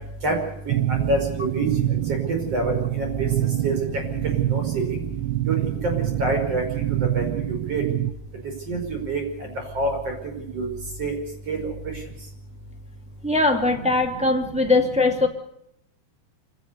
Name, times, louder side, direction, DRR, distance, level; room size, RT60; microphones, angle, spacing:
voice 1, 0.7-1.7 2.5-3.3 3.6-3.8 4.2-4.6 5.5-6.6 7.1-7.4 7.7-7.8 8.7-8.8 9.1-9.2 9.8-9.9 10.5-10.7 11.0-11.1 11.5-11.6, right 2 dB, 35° right, 3 dB, 6.2 m, -26 dB
sound 1, 0.7-8.1, right 13 dB, 75° right, 2.9 m, -26 dB
voice 2, 13.2-15.3, left 3 dB, 5° right, 1 dB, 0.6 m, -20 dB
25.5 x 17.0 x 6.8 m, 0.77 s
omnidirectional pair, 5.2 m